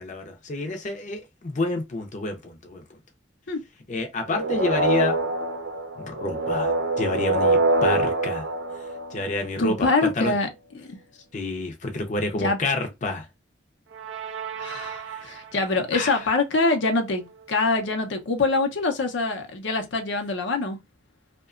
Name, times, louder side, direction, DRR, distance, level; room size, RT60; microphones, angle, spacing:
voice 1, 0.0-2.8 3.9-5.2 6.0-8.5 9.1-10.3 11.3-13.3 15.1-15.2 15.9-16.3, left 2 dB, 45° left, 0.6 m, -29 dB
sound 1, 4.3-9.6 13.9-15.6, right 2 dB, 90° right, 0.6 m, -25 dB
voice 2, 9.6-10.5 10.7-11.0 12.4-12.6 14.6-20.8, left 3 dB, 80° left, 0.6 m, -24 dB
2.8 x 2.2 x 2.4 m
head